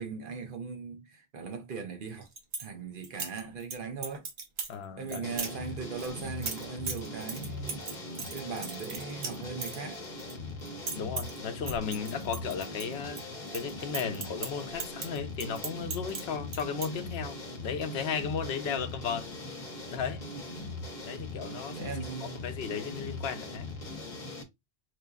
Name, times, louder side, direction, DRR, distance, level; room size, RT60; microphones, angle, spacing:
voice 1, 0.0-2.3 2.6-4.2 5.0-7.8 8.3-10.0 18.6-18.9 20.3-20.4 21.8-22.4, right 5 dB, 60° right, 0.9 m, -39 dB
sound 1, 2.1-2.7 3.0-3.7 4.0-4.7 5.1-5.5 6.0-10.3 10.6-11.4 11.7-13.2 13.5-16.2 16.5-16.9, right 4 dB, 80° right, 1.1 m, -37 dB
voice 2, 4.7-5.4 10.9-13.3 13.5-19.3 19.9-20.3 21.0-23.7, left 6 dB, 80° left, 0.8 m, -35 dB
sound 2, 5.2-24.4, left 2 dB, 50° left, 0.8 m, -41 dB
4.4 x 2.5 x 2.3 m
omnidirectional pair, 1.0 m